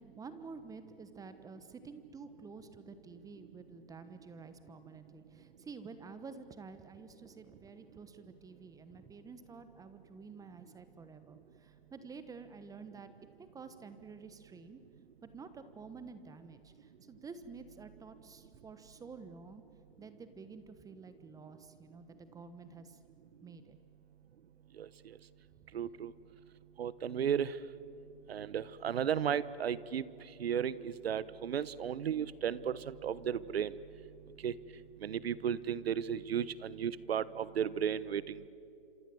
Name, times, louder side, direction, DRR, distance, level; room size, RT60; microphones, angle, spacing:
voice 1, 0.0-13.1 13.4-14.8 15.2-19.6 20.0-23.0 23.4-23.8, right 4 dB, 10° right, 11 dB, 1.2 m, -50 dB
voice 2, 25.7-26.1 26.8-27.5 28.3-30.0 30.4-33.7 34.4-34.5 35.0-38.5, right 8 dB, 80° right, 18 dB, 1.1 m, -34 dB
27.0 x 27.0 x 7.8 m, 2.6 s
hypercardioid pair, 135°, 30 cm